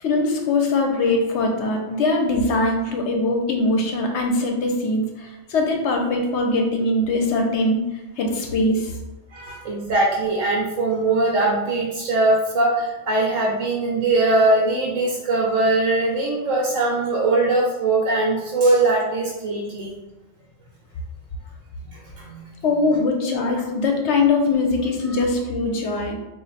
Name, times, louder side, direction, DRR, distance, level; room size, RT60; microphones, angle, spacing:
voice 1, 0.0-7.8 8.2-8.9 22.6-26.1, left 2 dB, 70° left, 2 dB, 0.8 m, -21 dB
voice 2, 9.3-19.9 21.9-22.5 25.1-25.2, right 2 dB, 80° right, -4 dB, 1.1 m, -21 dB
3.1 x 2.5 x 4.0 m, 1.0 s
omnidirectional pair, 1.3 m